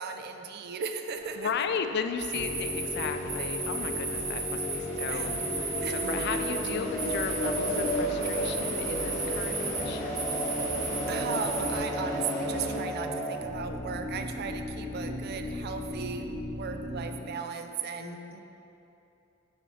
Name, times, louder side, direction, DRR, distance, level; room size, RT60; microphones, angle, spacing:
voice 1, 0.0-1.5 5.1-5.3 5.8-6.0 11.1-18.4, right 6 dB, 50° right, 7 dB, 0.4 m, -37 dB
sound 1, 1.1-12.8, equal, 40° left, 1.5 m, -35 dB
voice 2, 1.4-10.2 18.0-18.4, left 6 dB, 55° left, 8 dB, 0.3 m, -35 dB
sound 2, 2.2-11.8, right 3 dB, 30° right, 1.0 m, -35 dB
sound 3, 2.3-17.1, equal, 5° left, 0.7 m, -36 dB
7.1 x 6.3 x 3.2 m, 2.9 s
head